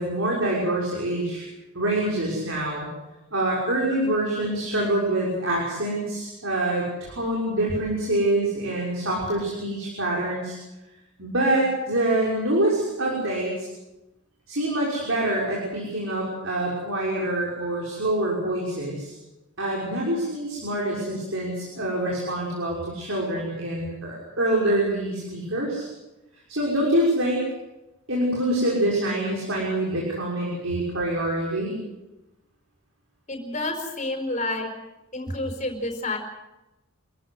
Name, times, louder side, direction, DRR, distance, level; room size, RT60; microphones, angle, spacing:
voice 1, 0.0-1.4 1.7-2.9 3.3-10.5 11.2-13.7 14.5-19.1 19.6-25.9 26.5-27.4 28.1-31.8, right 1 dB, 60° right, -3 dB, 6.2 m, -25 dB
voice 2, 33.3-34.7 35.1-36.2, left 2 dB, 35° left, 4 dB, 4.9 m, -29 dB
27.0 x 15.5 x 8.0 m, 0.99 s
head